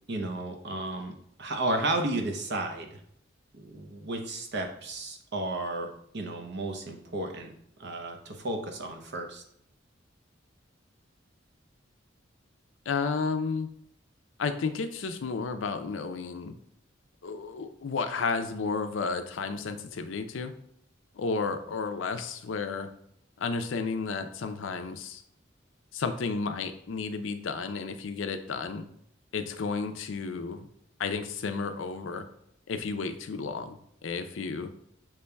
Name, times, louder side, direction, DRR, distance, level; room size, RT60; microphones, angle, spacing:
voice 1, 0.1-3.0 3.5-5.9 6.1-7.5 7.8-9.4, right 2 dB, 60° right, 4 dB, 0.7 m, -33 dB
voice 2, 12.9-13.7 14.4-16.5 17.2-20.5 21.1-22.9 23.4-25.2 25.9-28.8 29.3-30.7 31.0-32.3 32.7-34.7, left 4 dB, 80° left, 8 dB, 0.5 m, -32 dB
6.7 x 3.0 x 2.2 m, 0.70 s
head